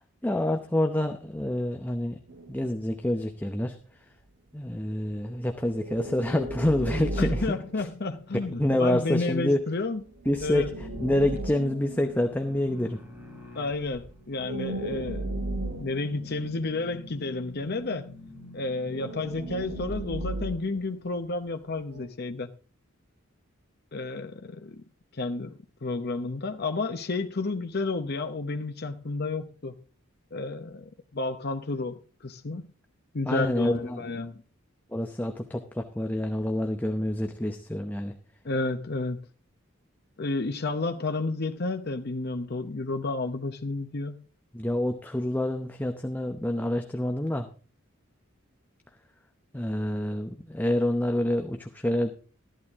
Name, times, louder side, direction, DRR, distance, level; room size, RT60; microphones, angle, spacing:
voice 1, 0.2-2.2 2.5-3.8 4.5-7.5 7.8-7.9 8.5-9.6 10.3-13.0 33.2-34.0 34.9-38.1 44.5-47.5 49.5-52.1, left 1 dB, 10° left, 0.8 m, -27 dB
sound 1, 2.3-3.5 5.6-8.7 10.2-13.2 13.8-14.1 14.4-17.4 18.9-21.5 21.8-22.1, right 1 dB, 60° right, 1.7 m, -36 dB
voice 2, 7.2-10.0 10.4-10.7 13.5-15.4 15.8-18.1 18.5-22.5 23.9-24.8 25.1-25.5 25.8-29.7 30.3-32.6 33.1-34.4 38.4-39.2 40.2-44.2, left 3 dB, 50° left, 0.8 m, -31 dB
fade-distorsion, 10.3-19.9, left 1 dB, 10° right, 3.6 m, -46 dB
14.0 x 11.5 x 3.6 m
head